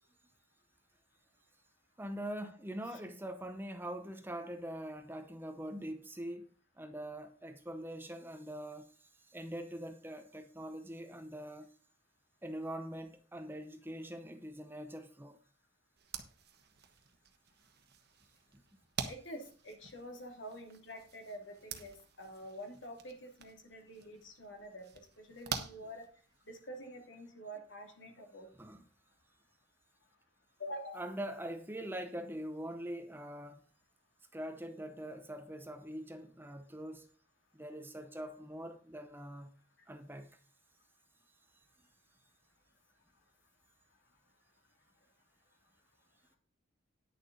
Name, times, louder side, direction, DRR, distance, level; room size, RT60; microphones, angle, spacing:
voice 1, 2.0-6.5 6.8-11.7 12.4-15.4 18.5-18.6 28.6-28.8 30.9-33.6 34.3-37.1 37.5-39.5 39.9-40.4, right 1 dB, 10° right, 0.7 m, -43 dB
sound 1, 16.0-26.6, right 6 dB, 50° right, 1.3 m, -47 dB
voice 2, 19.1-24.9 25.2-26.0 26.5-28.5 30.6-31.0, equal, 60° left, 2.8 m, -47 dB
10.5 x 6.9 x 5.3 m
head